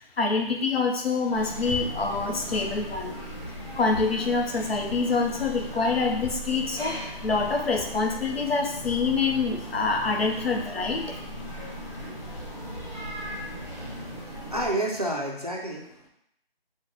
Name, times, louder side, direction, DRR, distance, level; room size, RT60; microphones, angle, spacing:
voice 1, 0.0-3.2 3.7-11.2, left 4 dB, 75° left, 2 dB, 0.7 m, -26 dB
sound 1, 1.3-14.7, equal, 30° left, 1.3 m, -38 dB
voice 2, 14.2-16.1, right 1 dB, 40° right, -1 dB, 0.4 m, -30 dB
3.0 x 2.2 x 3.6 m, 0.75 s
figure-of-eight pair, 180°, 31 cm